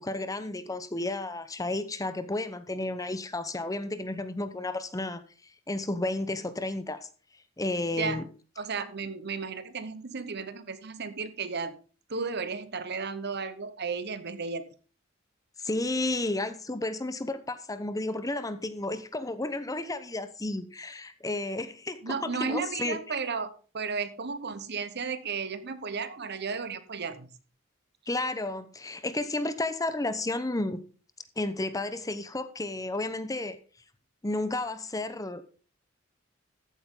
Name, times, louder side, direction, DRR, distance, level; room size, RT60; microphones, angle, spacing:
voice 1, 0.0-5.2 5.7-7.1 7.6-8.3 15.6-23.2 28.1-30.8 31.4-33.6 34.2-35.4, left 2 dB, 15° left, 0.8 m, -32 dB
voice 2, 8.6-11.8 12.1-14.7 22.0-27.3, right 5 dB, 55° right, 1.1 m, -34 dB
14.0 x 8.6 x 3.8 m
head